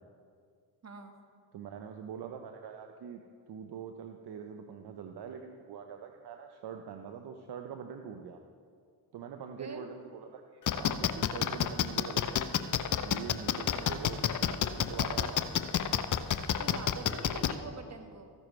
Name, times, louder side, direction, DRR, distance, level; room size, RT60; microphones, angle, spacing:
voice 1, 0.8-1.1 9.6-9.9 13.7-14.0 16.6-18.3, right 3 dB, 35° right, 5 dB, 1.6 m, -44 dB
voice 2, 1.5-3.2 3.5-8.4 9.1-12.5 13.0-15.7, right 7 dB, 60° right, 5 dB, 0.8 m, -44 dB
sound 1, 10.7-17.5, left 9 dB, 40° left, 0.7 m, -28 dB
14.5 x 10.5 x 3.3 m, 2.2 s
hypercardioid pair, 50°, 45 cm